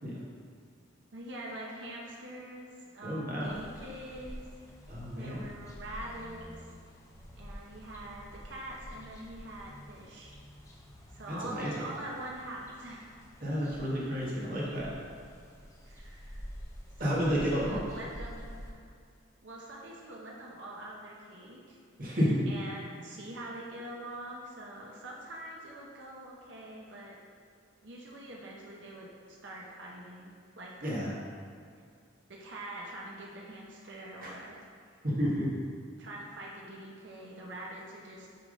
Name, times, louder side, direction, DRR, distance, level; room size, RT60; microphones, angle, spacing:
voice 1, 1.1-4.4 5.2-6.7 7.3-10.3 11.1-13.1 15.8-16.5 17.0-18.9 19.4-21.8 22.5-27.2 27.8-31.1 32.3-34.6 36.0-38.3, right 1 dB, 65° right, -3 dB, 0.9 m, -44 dB
voice 2, 3.0-3.5 4.9-5.4 11.3-11.9 13.4-14.9 17.0-17.9 22.0-22.4 30.8-31.1 34.2-34.3 35.0-35.5, equal, 45° right, -5 dB, 1.5 m, -31 dB
sound 1, 3.4-18.7, equal, 15° left, 0.6 m, -48 dB
6.9 x 3.6 x 5.1 m, 2.2 s
head